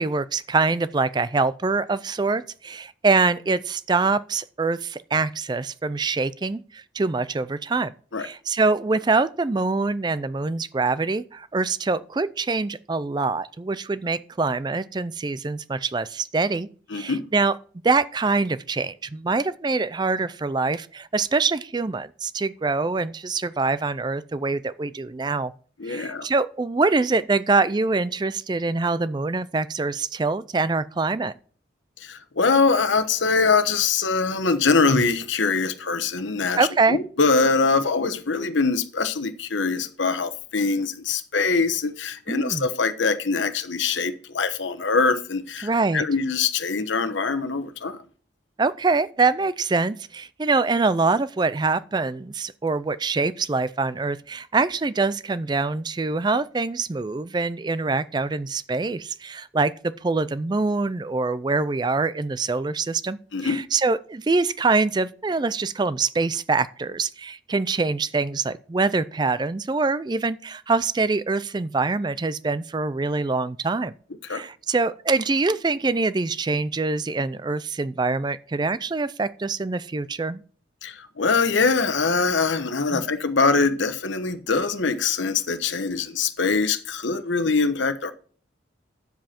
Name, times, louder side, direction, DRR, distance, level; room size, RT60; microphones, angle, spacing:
voice 1, 0.0-7.9 8.2-17.5 17.8-25.5 25.9-31.3 36.6-37.0 42.3-42.7 45.6-46.0 48.6-73.9 74.3-80.4 82.9-83.0, right 3 dB, 25° right, 0.4 m, -24 dB
voice 2, 16.9-17.2 25.8-26.3 32.0-48.0 63.3-63.6 74.3-74.4 80.8-88.1, left 4 dB, 80° left, 1.0 m, -23 dB
9.3 x 7.6 x 4.3 m
head